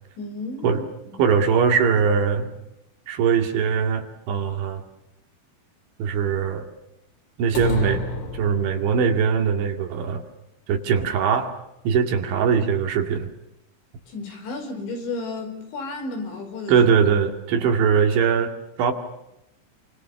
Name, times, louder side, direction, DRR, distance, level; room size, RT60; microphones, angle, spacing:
voice 1, 0.2-1.3 14.1-16.8 17.5-17.7, left 3 dB, 60° left, 5 dB, 7.0 m, -33 dB
voice 2, 1.2-2.5 3.1-4.8 6.0-6.7 7.4-8.0 8.3-10.2 10.7-11.5 11.8-13.3 16.7-18.9, right 6 dB, 65° right, 6 dB, 4.4 m, -21 dB
sound 1, 7.5-9.1, left 2 dB, 40° left, 3.4 m, -29 dB
28.5 x 26.0 x 7.1 m, 0.87 s
omnidirectional pair, 5.9 m